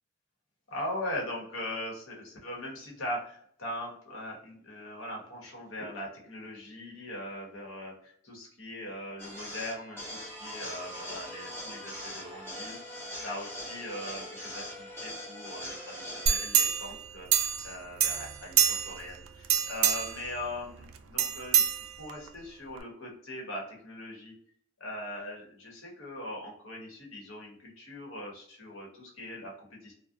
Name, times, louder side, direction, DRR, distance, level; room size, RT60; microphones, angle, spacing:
voice 1, 0.7-12.8 13.2-17.3 17.6-24.3 24.8-29.9, left 1 dB, 85° left, -1 dB, 1.0 m, -40 dB
sound 1, 9.2-16.4, equal, 10° left, 0.8 m, -41 dB
sound 2, 16.3-17.7 18.0-19.1 19.4-20.2 21.2-22.3 22.8-22.9, right 9 dB, 85° right, 0.3 m, -26 dB
2.4 x 2.1 x 2.5 m, 0.64 s
head